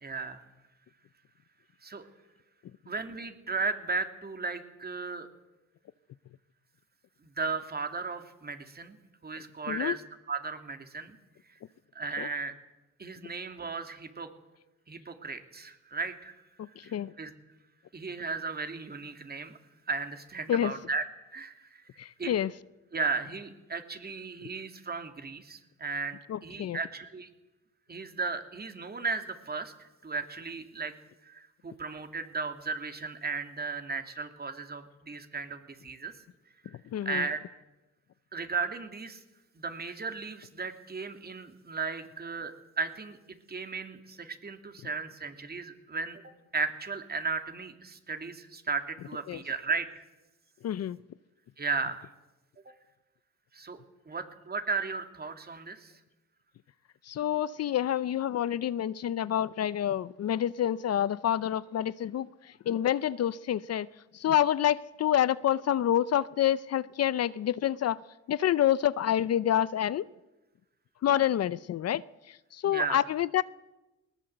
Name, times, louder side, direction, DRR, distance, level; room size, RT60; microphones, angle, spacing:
voice 1, 0.0-0.4 1.8-2.0 2.9-5.3 7.2-9.0 9.2-11.2 11.9-12.6 13.0-14.3 14.9-16.3 16.8-17.3 17.9-19.6 19.9-21.0 21.3-21.8 22.2-22.4 22.9-27.3 27.9-30.9 31.2-36.1 37.0-37.4 38.3-39.2 39.6-43.2 43.5-46.2 46.5-50.0 51.6-52.1 53.5-53.8 54.1-55.9 72.7-73.0, right 4 dB, 30° right, 7 dB, 2.8 m, -35 dB
voice 2, 16.6-17.1 20.5-20.7 22.0-22.5 26.3-26.8 36.9-37.2 49.3-49.4 50.6-51.0 57.1-62.3 62.7-63.9 64.1-68.0 68.3-70.1 71.0-72.0 72.5-73.4, left 11 dB, 55° left, 18 dB, 0.7 m, -27 dB
20.5 x 19.0 x 7.9 m, 1.0 s
cardioid pair, 90°, 30 cm